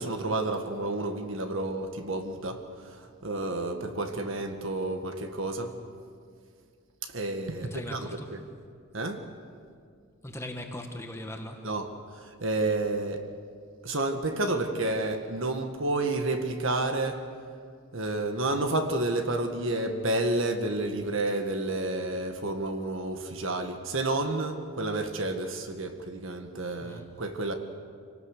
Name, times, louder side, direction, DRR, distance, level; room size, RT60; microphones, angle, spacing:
voice 1, 0.0-5.7 7.0-8.4 8.9-9.2 11.6-11.9 12.1-13.2 13.8-17.2 17.9-27.5, right 2 dB, 60° right, 6 dB, 1.7 m, -30 dB
voice 2, 7.7-8.3 10.2-11.6 26.8-27.1, left 1 dB, 10° left, 4 dB, 1.5 m, -39 dB
25.5 x 18.0 x 6.7 m, 2.2 s
head